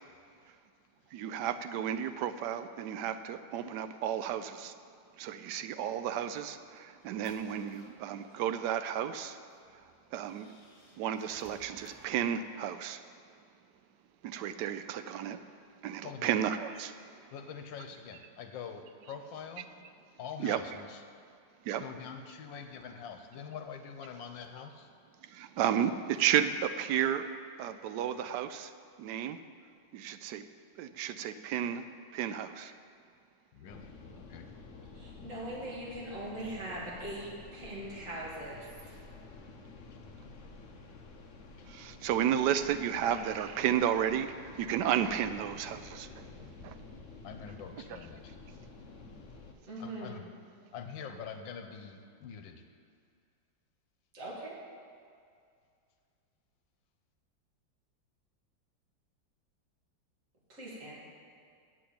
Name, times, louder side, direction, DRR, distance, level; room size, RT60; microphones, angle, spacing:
voice 1, 1.1-4.7 5.2-9.4 10.1-10.5 11.0-13.0 14.2-15.4 15.8-16.9 20.4-20.6 21.6-21.8 25.2-27.3 27.6-28.7 29.0-29.4 29.9-30.4 30.8-31.9 32.1-32.7 41.7-46.3 46.6-46.8, right 9 dB, 75° right, 10 dB, 1.1 m, -32 dB
sound 1, 6.5-8.6 9.5-9.6 10.2-12.2, left 1 dB, 20° left, 1.3 m, -58 dB
voice 2, 16.0-16.4 17.3-19.7 20.2-21.0 21.8-24.9 33.5-34.5 35.2-35.3 41.6-41.7 47.2-48.3 49.8-50.2 50.7-52.6, left 6 dB, 80° left, 6 dB, 1.5 m, -45 dB
sound 2, 33.7-49.5, left 3 dB, 50° left, 0.9 m, -50 dB
voice 3, 34.9-39.0 49.6-50.2 54.1-54.6 60.5-61.0, right 1 dB, 45° right, -6 dB, 2.7 m, -41 dB
7.7 x 7.6 x 8.6 m, 2.3 s
omnidirectional pair, 2.0 m